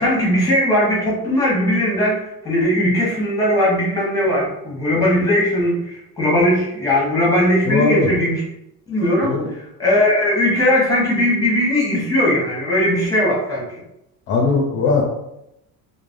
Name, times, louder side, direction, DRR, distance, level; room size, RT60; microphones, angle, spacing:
voice 1, 0.0-8.4 8.9-9.3 9.8-13.7, left 1 dB, 10° left, -4 dB, 0.9 m, -18 dB
voice 2, 7.6-8.1 9.2-9.5 14.3-15.0, left 3 dB, 35° left, -1 dB, 0.4 m, -18 dB
3.2 x 2.1 x 2.5 m, 0.85 s
cardioid pair, 155°, 36 cm